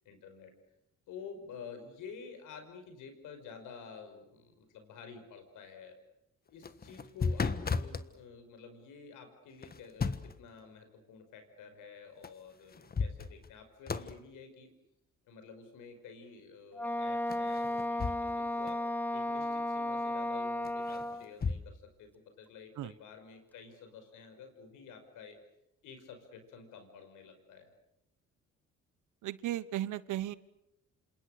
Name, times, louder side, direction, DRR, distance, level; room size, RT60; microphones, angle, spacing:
voice 1, 0.1-0.5 1.1-6.0 6.5-14.7 15.3-18.8 19.1-25.4 25.8-27.7, left 5 dB, 90° left, 7 dB, 5.6 m, -50 dB
sound 1, 6.5-8.1 9.6-10.4 12.2-12.3 12.7-13.6 13.9-14.2 17.3-18.4 18.7-18.8 20.6-21.6, left 4 dB, 30° left, 1.4 m, -35 dB
Wind instrument woodwind instrument, 16.7-21.3, left 1 dB, 5° left, 1.0 m, -34 dB
voice 2, 29.2-30.4, right 13 dB, 85° right, 17 dB, 1.1 m, -35 dB
28.0 x 27.5 x 6.6 m, 0.84 s
cardioid pair, 90°, 30 cm